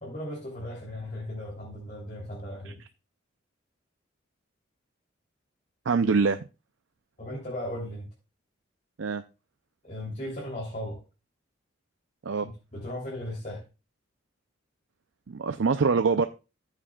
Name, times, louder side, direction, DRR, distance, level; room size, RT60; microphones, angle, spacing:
voice 1, 0.0-2.8 7.2-8.1 9.8-11.0 12.4-13.6, left 1 dB, 40° left, 3.2 m, -37 dB
voice 2, 5.9-6.4 9.0-9.2 12.3-12.5 15.3-16.3, right 4 dB, 80° right, 0.5 m, -24 dB
14.5 x 7.5 x 2.4 m
head